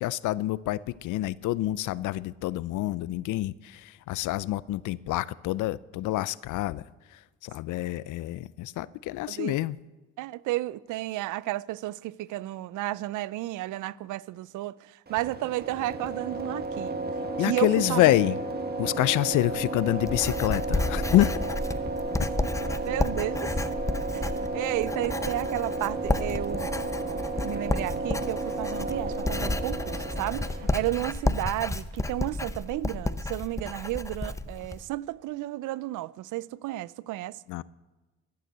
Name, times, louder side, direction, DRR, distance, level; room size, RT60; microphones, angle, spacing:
voice 1, 0.0-6.8 7.1-9.8 17.4-18.4 18.8-21.4 37.5-37.6, left 15 dB, 80° left, 0.5 m, -27 dB
voice 2, 9.3-9.6 10.2-17.0 17.4-18.0 22.8-23.5 24.1-26.7 27.4-37.4, right 16 dB, 80° right, 0.5 m, -32 dB
sound 1, 15.1-31.0, right 2 dB, 30° right, 1.5 m, -33 dB
Writing, 19.4-34.8, left 2 dB, 10° left, 0.6 m, -31 dB
12.5 x 9.3 x 7.9 m
cardioid pair, 90°, 30 cm